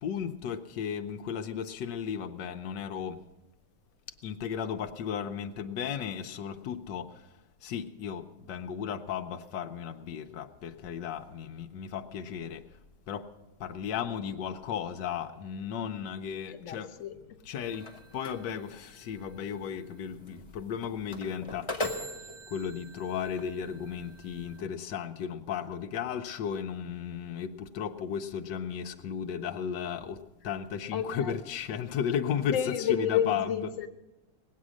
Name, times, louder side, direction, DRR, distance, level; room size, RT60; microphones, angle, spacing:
voice 1, 0.0-3.2 4.2-7.3 7.6-12.6 13.1-13.3 13.6-17.0 17.4-22.2 22.5-33.6, left 8 dB, 90° left, 1.4 m, -35 dB
voice 2, 16.5-17.4 30.9-31.3 32.5-33.9, left 9 dB, 55° left, 1.3 m, -30 dB
sound 1, 17.6-24.6, left 1 dB, 20° left, 1.1 m, -41 dB
19.5 x 8.5 x 6.3 m
omnidirectional pair, 1.8 m